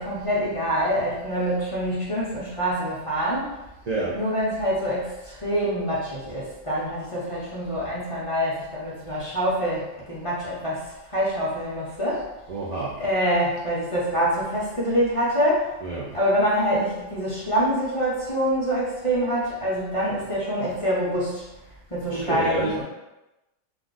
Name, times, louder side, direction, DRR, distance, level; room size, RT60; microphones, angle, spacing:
voice 1, 0.0-3.6 4.1-12.3 13.0-15.8 16.1-21.4 21.9-22.8, equal, 35° left, -8 dB, 0.6 m, -25 dB
voice 2, 3.9-4.2 12.5-12.9 15.8-16.1 22.1-22.8, right 3 dB, 60° right, -6 dB, 0.4 m, -28 dB
2.5 x 2.4 x 3.8 m, 0.99 s
omnidirectional pair, 1.3 m